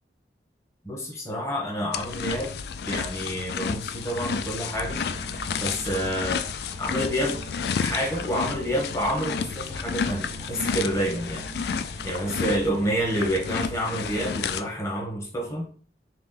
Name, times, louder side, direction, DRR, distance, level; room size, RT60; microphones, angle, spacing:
voice 1, 0.8-2.6 2.8-5.0 5.6-6.4 6.8-7.4 7.8-11.4 12.0-15.7, equal, 15° left, -2 dB, 0.9 m, -28 dB
sound 1, 1.9-14.6, left 6 dB, 65° left, 0.3 m, -31 dB
sound 2, 4.7-14.4, right 2 dB, 40° right, 0.5 m, -42 dB
3.5 x 2.9 x 3.8 m, 0.43 s
head